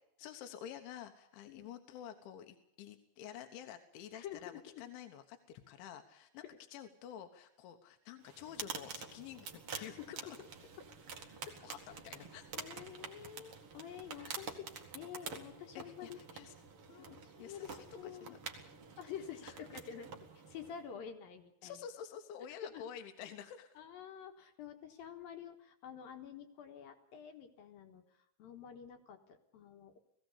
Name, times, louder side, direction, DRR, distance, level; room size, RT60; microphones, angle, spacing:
voice 1, 0.2-4.5 4.8-6.4 6.7-10.0 10.3-10.4 11.6-12.5 14.2-14.4 15.8-16.6 16.9-18.4 19.4-19.5 21.6-23.8, left 9 dB, 80° left, 6 dB, 3.5 m, -50 dB
voice 2, 4.1-4.8 9.7-10.5 11.5-11.6 12.5-16.2 17.0-18.4 19.0-21.8 22.6-22.8 23.8-30.0, left 8 dB, 65° left, 6 dB, 2.8 m, -49 dB
sound 1, 8.2-20.9, right 5 dB, 50° right, 1.8 m, -48 dB
19.5 x 16.0 x 8.3 m, 0.77 s
omnidirectional pair, 5.4 m